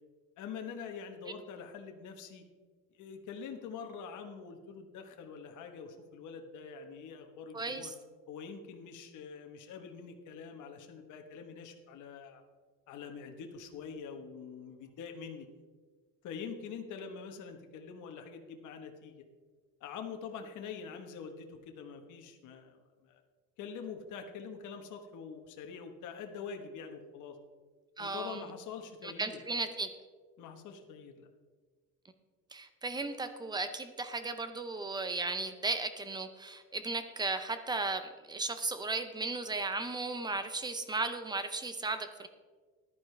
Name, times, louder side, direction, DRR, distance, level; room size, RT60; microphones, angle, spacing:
voice 1, 0.4-2.4 2.9-7.9 8.3-12.4 12.9-15.5 16.2-19.1 19.8-23.2 23.6-27.4 28.0-29.4 30.4-31.3, left 6 dB, 55° left, 4 dB, 1.2 m, -45 dB
voice 2, 7.5-7.9 28.0-28.4 29.0-29.9 32.5-42.3, right 3 dB, 10° right, 9 dB, 0.6 m, -35 dB
14.0 x 11.5 x 3.3 m, 1.5 s
cardioid pair, 170°, 36 cm